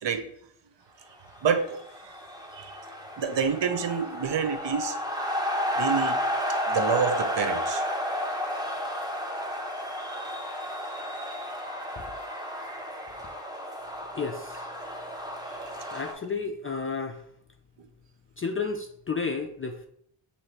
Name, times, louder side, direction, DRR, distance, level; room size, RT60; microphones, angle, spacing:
sound 1, 1.3-16.1, equal, 10° right, 1.0 m, -32 dB
voice 1, 1.4-2.1 2.5-2.8 3.2-5.0 5.7-6.2 6.7-7.8 15.5-15.7 16.7-16.8, right 6 dB, 60° right, 7 dB, 0.8 m, -28 dB
voice 2, 14.2-14.7 15.9-17.2 18.4-19.9, left 4 dB, 30° left, 4 dB, 0.4 m, -32 dB
6.1 x 2.8 x 2.9 m, 0.70 s
cardioid pair, 55°, 49 cm